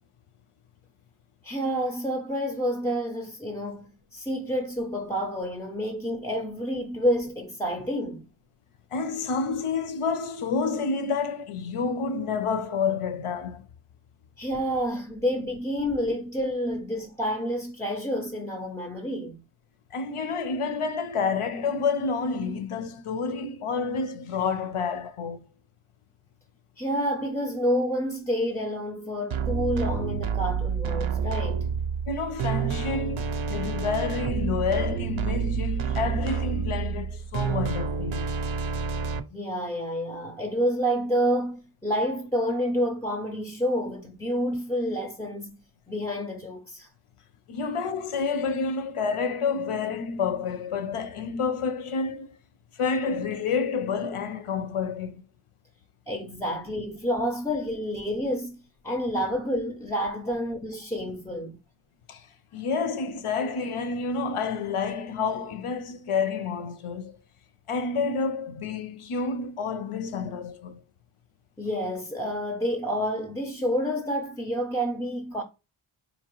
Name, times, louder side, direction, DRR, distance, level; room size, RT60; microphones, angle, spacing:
voice 1, 1.4-8.3 14.4-19.4 26.8-31.7 39.3-45.6 45.9-46.9 56.1-58.6 58.8-61.6 71.6-75.4, equal, 5° left, 0.4 m, -29 dB
voice 2, 8.9-13.6 19.9-25.4 32.1-38.3 47.5-52.4 52.7-55.2 62.1-62.3 62.5-67.2 67.7-70.8, left 5 dB, 80° left, 0.7 m, -29 dB
sound 1, 29.3-39.2, right 6 dB, 70° right, 0.5 m, -29 dB
4.2 x 2.8 x 2.9 m
wide cardioid pair, 65°, 50 cm